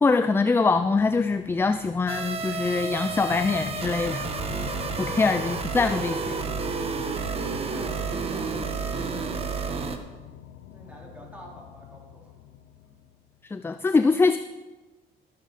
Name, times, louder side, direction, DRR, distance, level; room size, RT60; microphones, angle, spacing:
voice 1, 0.0-4.3 5.0-6.4 13.4-14.4, left 4 dB, 15° left, 11 dB, 0.4 m, -23 dB
sound 1, 0.8-13.3, left 10 dB, 85° left, 0.8 m, -42 dB
sound 2, 2.1-10.0, right 5 dB, 35° right, 1.2 m, -31 dB
voice 2, 7.3-9.9 10.7-12.4 12.8-13.0, right 1 dB, 10° right, -4 dB, 4.0 m, -47 dB
13.0 x 11.5 x 4.1 m, 1.2 s
cardioid pair, 110°, 17 cm